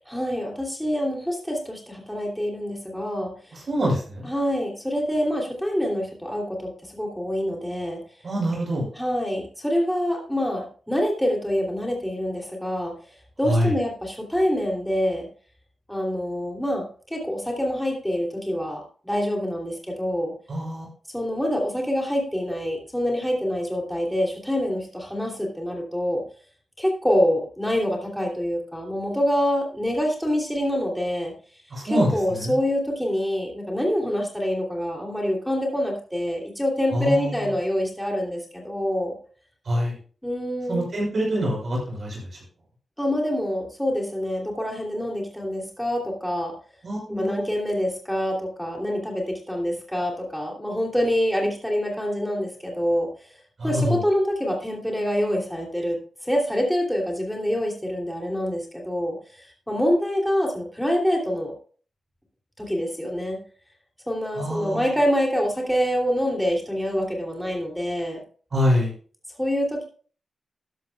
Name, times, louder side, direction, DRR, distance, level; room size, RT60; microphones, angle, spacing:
voice 1, 0.1-3.6 4.2-8.0 8.9-12.9 13.4-15.3 15.9-20.3 21.1-26.2 26.8-31.3 31.8-39.1 40.2-40.9 43.0-46.5 47.1-53.1 53.6-56.0 56.2-61.5 62.6-63.4 64.1-68.2 69.4-69.8, equal, ahead, -1 dB, 2.9 m, -26 dB
voice 2, 3.5-4.3 8.2-8.9 13.4-13.7 20.5-20.9 31.7-32.6 36.9-37.5 39.6-39.9 40.7-42.4 46.8-47.5 53.6-54.0 64.3-64.9 68.5-68.9, equal, 50° right, -3 dB, 6.5 m, -25 dB
12.5 x 12.0 x 2.3 m, 0.41 s
wide cardioid pair, 120°, 0 cm